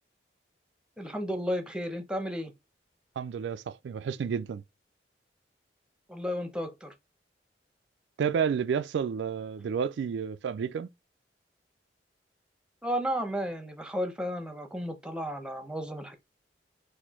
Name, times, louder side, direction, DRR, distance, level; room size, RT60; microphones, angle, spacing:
voice 1, 1.0-2.5 6.1-6.9 12.8-16.1, equal, 5° right, 0.7 m, -33 dB
voice 2, 3.2-4.6 8.2-10.9, right 7 dB, 80° right, 0.3 m, -30 dB
4.3 x 2.6 x 4.2 m
head